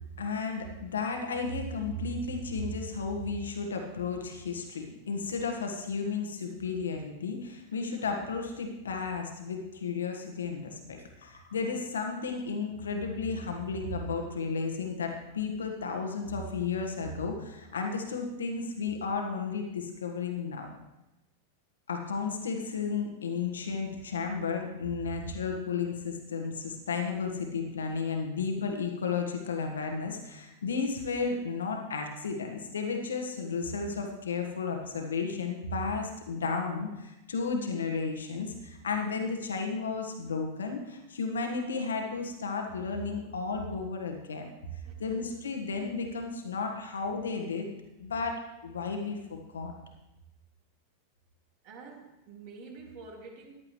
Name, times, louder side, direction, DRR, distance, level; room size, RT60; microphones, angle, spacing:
voice 1, 0.2-20.7 21.9-44.5 45.0-47.7 48.0-49.7, left 4 dB, 70° left, 3 dB, 1.5 m, -33 dB
voice 2, 44.8-45.2 51.6-53.5, right 4 dB, 45° right, 1 dB, 2.4 m, -48 dB
14.5 x 10.5 x 3.2 m, 0.95 s
figure-of-eight pair, 90°, 0 cm